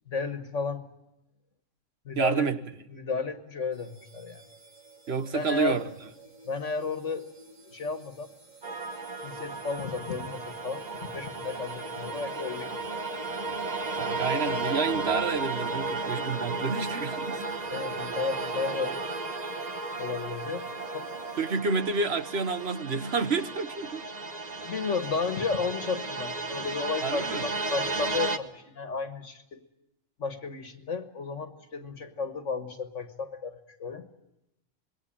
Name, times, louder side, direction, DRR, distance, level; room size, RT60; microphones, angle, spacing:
voice 1, 0.1-0.8 2.0-2.5 2.9-4.4 5.3-5.8 6.5-7.3 7.7-8.3 9.2-13.0 17.7-18.9 20.0-21.1 24.6-29.6 30.2-34.1, left 4 dB, 70° left, 1.7 m, -33 dB
voice 2, 2.2-2.6 5.1-5.9 14.0-17.4 21.4-24.0 27.0-27.4, right 5 dB, 55° right, 1.4 m, -29 dB
sound 1, 3.7-21.6, right 3 dB, 75° right, 2.4 m, -51 dB
sound 2, 8.6-28.4, right 3 dB, 35° right, 1.2 m, -34 dB
26.5 x 21.5 x 8.8 m
omnidirectional pair, 1.3 m